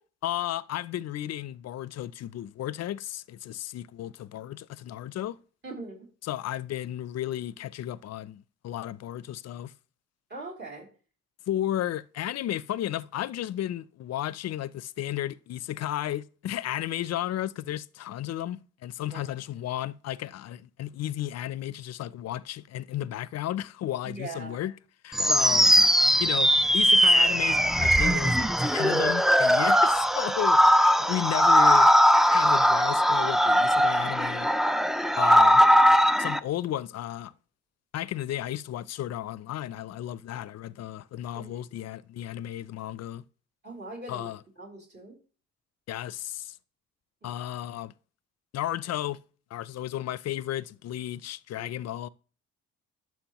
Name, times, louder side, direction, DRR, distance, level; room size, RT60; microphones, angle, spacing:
voice 1, 0.2-5.4 6.2-9.7 11.5-24.7 25.0-25.7 26.2-31.9 32.3-34.5 35.2-35.6 36.2-37.3 37.9-43.2 44.1-44.4 45.9-46.6 47.2-47.9 48.5-49.2 49.5-52.1, left 12 dB, 60° left, 0.5 m, -33 dB
voice 2, 5.6-6.1 10.3-10.9 19.1-19.4 24.0-24.6 25.2-25.3 31.0-31.2 31.4-31.5 41.3-41.7 43.6-44.3 44.6-45.2 47.2-47.3 51.5-51.7, right 2 dB, 35° right, 3.1 m, -41 dB
sound 1, 25.1-36.4, equal, ahead, 0.3 m, -20 dB
11.5 x 6.0 x 3.0 m
cardioid pair, 90°, 30 cm